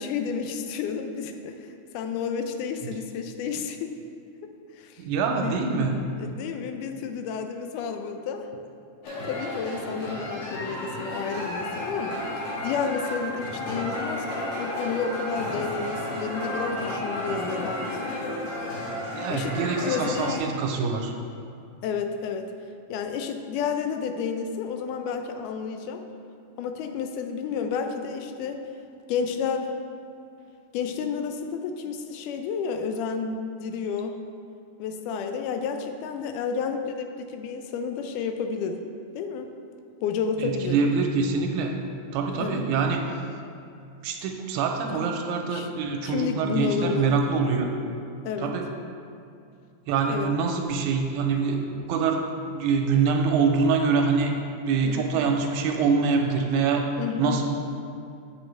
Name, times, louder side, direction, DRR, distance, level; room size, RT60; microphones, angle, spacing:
voice 1, 0.0-1.7 1.9-3.9 4.8-5.0 5.4-5.6 6.2-8.5 9.3-18.2 19.3-20.4 21.8-22.5 22.9-26.0 26.6-28.6 29.1-29.7 30.7-34.2 34.8-38.8 39.1-39.5 40.0-40.7 42.3-42.7 44.9-45.0 45.5-45.7 46.0-47.2 48.2-48.5 50.1-50.3 54.8-55.1 57.0-57.4, left 6 dB, 85° left, 6 dB, 2.0 m, -31 dB
voice 2, 5.0-5.9 19.2-21.1 40.4-41.7 42.1-43.0 44.0-47.7 48.4-48.7 49.9-52.2 52.5-54.3 54.6-56.8 57.2-57.5, right 5 dB, 80° right, 3 dB, 1.9 m, -25 dB
sound 1, 9.0-20.4, left 1 dB, 65° left, 2.8 m, -32 dB
8.2 x 6.5 x 3.2 m, 2.5 s
omnidirectional pair, 3.6 m